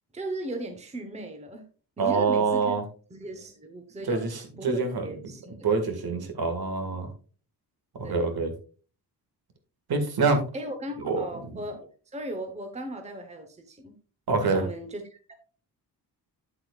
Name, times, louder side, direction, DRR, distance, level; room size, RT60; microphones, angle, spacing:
voice 1, 0.1-1.6 2.0-2.8 3.1-4.2 4.6-5.6 8.0-8.3 10.5-13.9 14.5-15.3, right 1 dB, 15° right, 5 dB, 1.0 m, -37 dB
voice 2, 2.0-2.8 4.0-5.1 5.6-7.1 7.9-8.5 9.9-10.4 11.0-11.6 14.3-14.7, right 4 dB, 60° right, 6 dB, 1.9 m, -26 dB
9.0 x 7.7 x 2.4 m, 0.38 s
wide cardioid pair, 155°, 41 cm